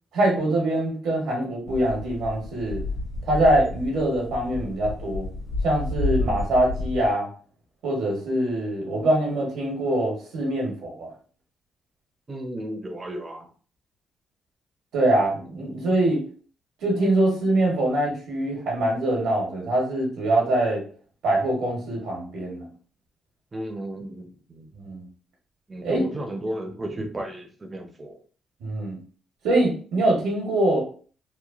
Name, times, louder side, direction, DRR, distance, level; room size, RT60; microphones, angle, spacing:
voice 1, 0.1-2.8 3.3-5.3 5.6-7.3 7.8-11.1 14.9-16.2 16.8-20.8 21.2-22.7 24.7-25.1 25.8-26.0 28.6-29.0 29.4-30.8, right 1 dB, 85° right, -1 dB, 1.0 m, -23 dB
sound 1, 1.7-7.1, left 2 dB, 75° left, 1.4 m, -31 dB
voice 2, 12.3-13.5 23.5-24.7 25.7-28.2, right 1 dB, 25° right, 4 dB, 0.5 m, -34 dB
3.0 x 2.2 x 2.4 m, 0.43 s
cardioid pair, 90°, 0 cm